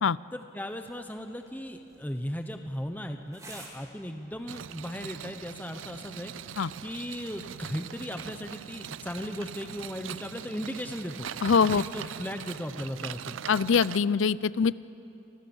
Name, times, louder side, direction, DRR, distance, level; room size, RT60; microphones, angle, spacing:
voice 1, 0.3-11.3 11.7-13.4, equal, 10° left, 6 dB, 1.0 m, -37 dB
sound 1, 0.8-5.7, right 2 dB, 15° right, 3.2 m, -54 dB
sound 2, 4.5-14.0, right 8 dB, 85° right, 0.5 m, -41 dB
voice 2, 11.4-11.8 13.5-14.7, left 6 dB, 80° left, 19 dB, 0.5 m, -23 dB
29.5 x 25.0 x 7.2 m, 2.9 s
head